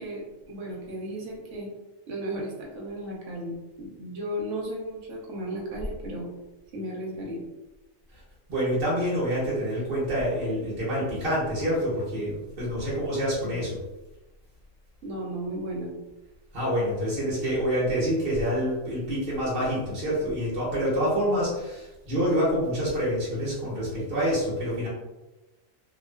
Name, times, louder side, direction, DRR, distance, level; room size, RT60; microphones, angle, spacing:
voice 1, 0.0-1.7 2.1-6.3 6.7-7.4 13.4-13.5 15.0-15.9, right 1 dB, 70° right, -2 dB, 1.0 m, -35 dB
voice 2, 8.5-13.8 16.5-24.9, equal, 50° right, -7 dB, 0.9 m, -27 dB
2.4 x 2.3 x 2.2 m, 1.0 s
omnidirectional pair, 1.4 m